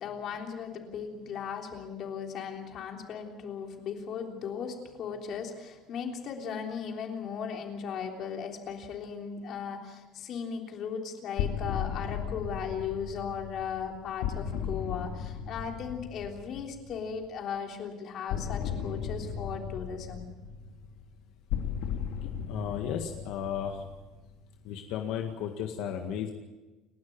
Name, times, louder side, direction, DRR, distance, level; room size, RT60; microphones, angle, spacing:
voice 1, 0.0-20.2, left 7 dB, 45° left, 2 dB, 3.5 m, -37 dB
sound 1, 11.4-17.1 18.3-24.6, left 7 dB, 80° left, 2.7 m, -36 dB
voice 2, 22.5-23.9 24.6-26.3, left 9 dB, 65° left, 3 dB, 1.9 m, -34 dB
30.0 x 12.5 x 8.8 m, 1.2 s
cardioid pair, 165°, 0 cm